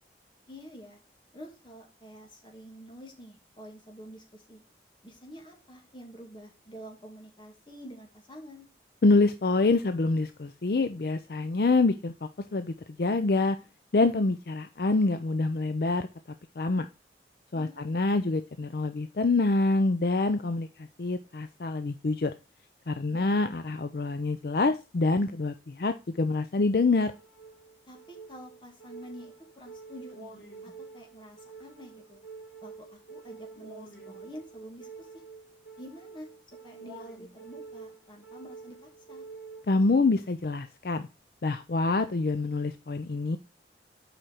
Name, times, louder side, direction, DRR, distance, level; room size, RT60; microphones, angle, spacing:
voice 1, 0.5-1.0 1.3-4.6 5.0-8.7 17.5-18.1 23.1-23.3 27.9-32.2 32.6-35.1 35.8-36.3 36.6-39.3, equal, 25° left, 1 dB, 2.3 m, -48 dB
voice 2, 9.0-12.7 13.0-13.6 13.9-16.1 16.6-16.9 17.5-22.3 22.9-27.1 39.7-41.1 41.4-43.4, left 3 dB, 60° left, 9 dB, 0.5 m, -26 dB
sound 1, 27.1-40.1, right 4 dB, 75° left, 3.1 m, -48 dB
7.8 x 5.0 x 4.4 m, 0.30 s
head